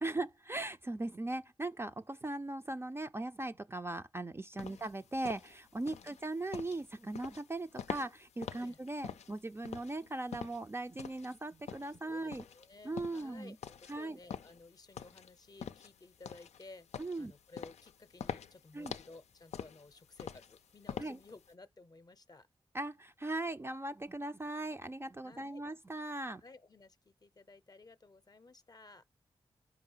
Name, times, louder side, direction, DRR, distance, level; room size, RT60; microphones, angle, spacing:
voice 1, 0.0-12.4 12.8-13.5 13.9-14.2 17.0-17.3 18.7-19.0 21.0-21.2 22.7-26.4, right 2 dB, 20° right, 0.4 m, -39 dB
sound 1, 4.6-21.5, left 8 dB, 85° left, 0.4 m, -46 dB
voice 2, 12.0-22.5 25.2-25.6 26.4-29.0, left 3 dB, 35° left, 0.7 m, -56 dB
5.3 x 4.8 x 5.5 m
cardioid pair, 60°, 11 cm